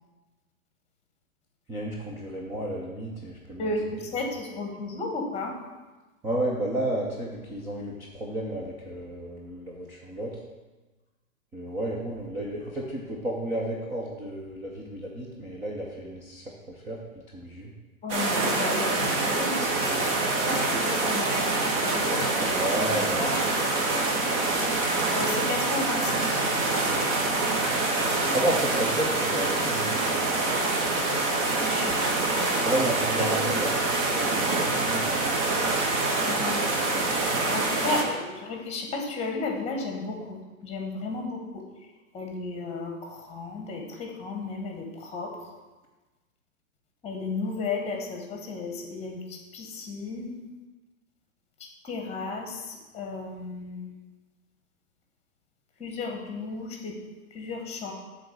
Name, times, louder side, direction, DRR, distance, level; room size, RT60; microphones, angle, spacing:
voice 1, 1.7-3.7 6.2-10.3 11.5-17.0 17.3-17.7 22.6-23.4 28.3-30.3 32.6-33.7 34.1-35.9, right 1 dB, 5° right, -4 dB, 0.4 m, -32 dB
voice 2, 3.6-5.5 18.0-23.7 25.1-26.5 31.6-32.7 33.2-33.4 36.2-36.6 37.5-41.6 42.1-45.5 47.0-50.4 51.6-53.9 55.8-57.0 57.3-57.9, left 3 dB, 15° left, 2 dB, 1.5 m, -34 dB
sound 1, 18.1-38.0, right 2 dB, 30° right, 1.2 m, -26 dB
7.7 x 4.0 x 6.8 m, 1.2 s
hypercardioid pair, 130°, 42 cm